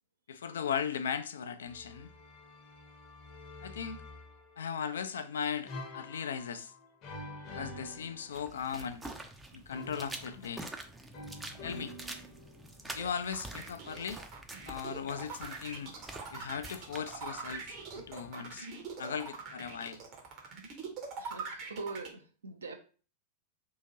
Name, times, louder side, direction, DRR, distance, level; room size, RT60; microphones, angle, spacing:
voice 1, 0.3-2.1 3.6-4.0 4.6-6.7 7.5-9.1 9.5-10.6 11.6-11.9 12.9-14.2 14.7-15.9 16.3-17.7 18.0-18.7 19.0-20.0, left 7 dB, 65° left, 0.3 m, -37 dB
sound 1, 1.6-4.8 5.7-8.8 9.7-13.1 15.2-18.5, left 2 dB, 40° left, 0.8 m, -49 dB
sound 2, 8.3-18.3, right 2 dB, 10° right, 0.4 m, -47 dB
sound 3, 13.0-22.1, right 5 dB, 40° right, 0.8 m, -43 dB
voice 2, 21.2-22.8, right 3 dB, 70° right, 0.6 m, -43 dB
2.8 x 2.4 x 2.8 m
figure-of-eight pair, 90°, 0 cm